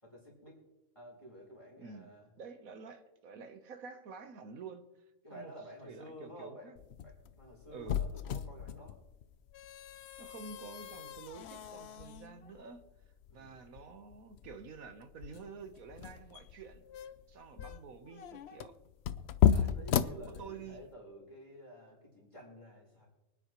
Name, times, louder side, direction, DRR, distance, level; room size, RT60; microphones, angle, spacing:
voice 1, 0.0-0.6 0.9-2.3 5.2-9.0 13.3-13.6 19.7-23.1, equal, 20° left, -4 dB, 4.1 m, -51 dB
voice 2, 1.8-2.1 2.4-4.8 5.3-5.5 5.8-6.8 7.7-8.0 10.2-12.8 13.3-16.8 17.3-18.7 19.5-19.8 20.4-20.9, right 5 dB, 85° right, 8 dB, 1.5 m, -49 dB
sound 1, 6.8-20.9, left 8 dB, 60° left, 0.8 m, -35 dB
24.5 x 9.7 x 3.1 m, 0.93 s
omnidirectional pair, 1.4 m